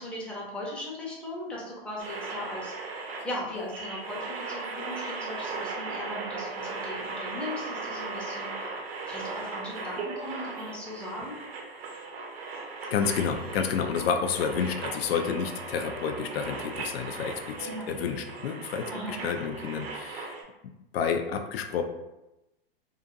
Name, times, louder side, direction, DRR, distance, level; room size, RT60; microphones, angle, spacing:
voice 1, 0.0-8.7 9.1-11.4 17.7-17.9 18.9-19.3, left 1 dB, 5° left, -5 dB, 0.6 m, -38 dB
sound 1, 2.0-20.4, right 3 dB, 75° right, 0.8 m, -37 dB
voice 2, 12.9-20.4 20.9-21.8, left 6 dB, 75° left, 5 dB, 0.5 m, -30 dB
2.8 x 2.5 x 2.5 m, 0.95 s
hypercardioid pair, 130°, 30 cm